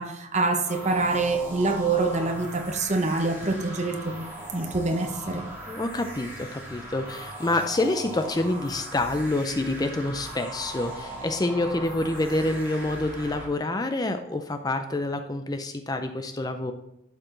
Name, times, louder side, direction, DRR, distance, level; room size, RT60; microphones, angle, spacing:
voice 1, 0.0-4.3 4.5-5.5, right 3 dB, 35° right, 0.9 m, -26 dB
sound 1, 0.6-13.5, right 1 dB, 10° right, 2.2 m, -39 dB
voice 2, 5.7-16.7, left 2 dB, 20° left, 0.4 m, -27 dB
11.5 x 4.8 x 3.8 m
head